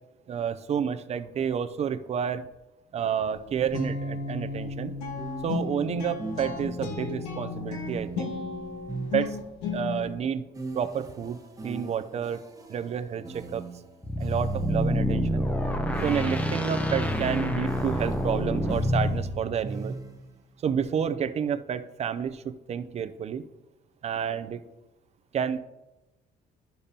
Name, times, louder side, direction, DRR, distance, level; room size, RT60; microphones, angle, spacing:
voice 1, 0.3-2.5 2.9-4.9 5.4-8.3 9.1-9.4 9.7-10.4 10.7-12.4 12.7-13.6 14.1-15.5 16.0-20.0 20.6-23.4 24.0-24.6 25.3-25.6, right 8 dB, 40° right, 11 dB, 0.5 m, -30 dB
sound 1, 3.3-10.2, left 4 dB, 85° left, 1.5 m, -34 dB
sound 2, 4.1-4.3 5.2-7.0 7.8-9.8 10.5-15.1 15.9-20.4, right 3 dB, 20° right, 1.0 m, -41 dB
sound 3, 14.0-19.3, equal, 10° left, 0.8 m, -27 dB
12.0 x 6.7 x 2.9 m, 1.0 s
cardioid pair, 110°, 17 cm